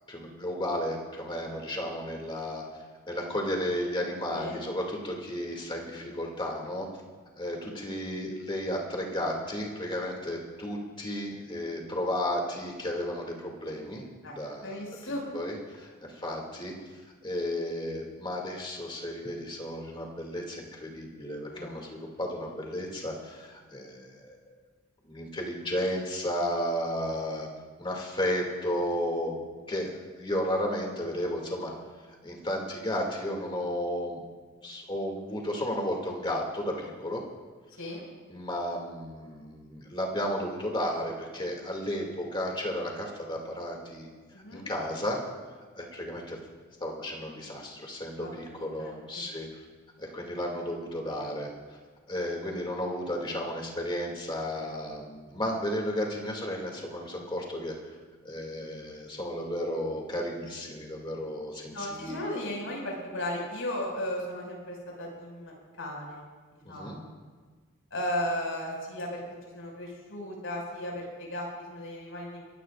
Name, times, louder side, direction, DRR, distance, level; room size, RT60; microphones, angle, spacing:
voice 1, 0.1-2.6 3.1-6.9 7.4-14.1 14.4-16.7 17.2-24.4 25.0-27.5 27.8-29.4 29.7-31.7 32.2-34.2 34.6-37.2 38.3-44.1 44.5-45.2 45.8-46.4 46.8-49.6 50.0-51.5 52.1-57.8 58.2-62.3 66.6-67.0, equal, 20° left, -1 dB, 2.4 m, -33 dB
voice 2, 14.6-15.2 21.5-21.9 37.8-38.0 44.3-44.7 48.2-49.0 61.7-66.2 66.7-67.1 67.9-72.4, left 1 dB, 70° left, -2 dB, 5.6 m, -36 dB
24.0 x 16.5 x 2.5 m, 1.5 s
head